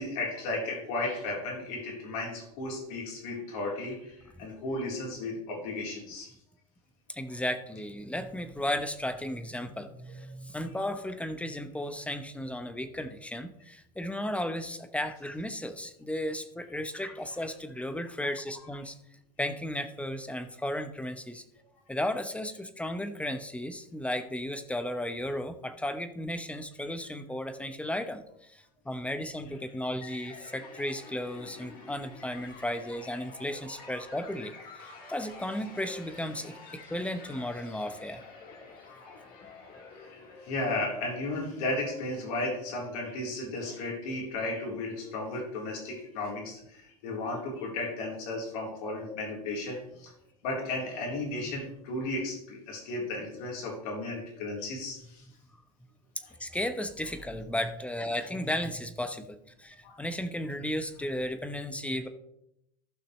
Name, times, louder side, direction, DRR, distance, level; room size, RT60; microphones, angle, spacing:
voice 1, 0.0-6.3 40.1-50.1 50.4-55.2 59.8-60.0, left 2 dB, 65° left, -2 dB, 3.8 m, -34 dB
voice 2, 7.1-18.9 19.4-21.4 21.9-34.5 35.1-38.2 56.4-62.1, left 1 dB, 5° left, 9 dB, 0.9 m, -34 dB
sound 1, 30.0-41.2, left 4 dB, 50° left, 2.9 m, -49 dB
14.5 x 5.8 x 3.2 m, 0.80 s
hypercardioid pair, 95°, 20 cm